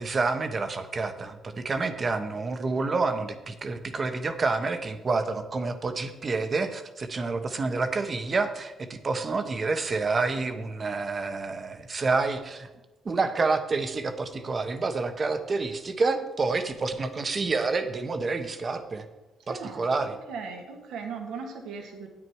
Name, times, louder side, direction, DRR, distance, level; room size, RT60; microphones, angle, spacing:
voice 1, 0.0-12.7 13.0-19.1 19.5-20.2, right 3 dB, 35° right, 9 dB, 1.1 m, -28 dB
voice 2, 19.5-19.9 20.3-22.1, right 5 dB, 85° right, 3 dB, 1.8 m, -37 dB
9.6 x 9.0 x 4.7 m, 1.1 s
cardioid pair, 90°, 0 cm